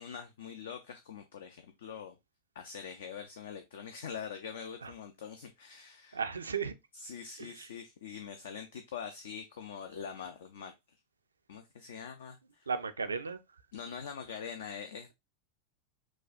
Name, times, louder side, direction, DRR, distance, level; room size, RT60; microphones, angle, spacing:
voice 1, 0.0-2.2 2.6-6.2 6.9-10.7 11.5-12.7 13.7-15.1, left 7 dB, 60° left, 0.5 m, -44 dB
voice 2, 6.1-6.7 7.4-7.7 12.7-13.4, right 5 dB, 75° right, 0.4 m, -35 dB
6.1 x 2.3 x 2.5 m
figure-of-eight pair, 90°, 0 cm